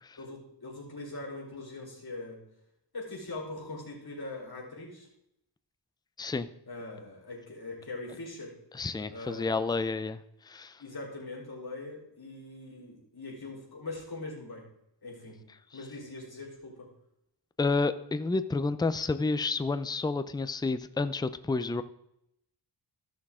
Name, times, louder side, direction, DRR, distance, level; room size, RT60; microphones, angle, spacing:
voice 1, 0.2-2.4 2.9-5.1 6.7-8.5 9.1-9.6 10.8-14.6 15.0-15.4 15.7-16.9, left 2 dB, 50° left, -3 dB, 3.9 m, -41 dB
voice 2, 8.7-10.2 10.5-10.8 17.6-21.8, left 3 dB, 10° left, 12 dB, 0.4 m, -30 dB
14.0 x 6.3 x 3.7 m, 0.79 s
wide cardioid pair, 80°, 46 cm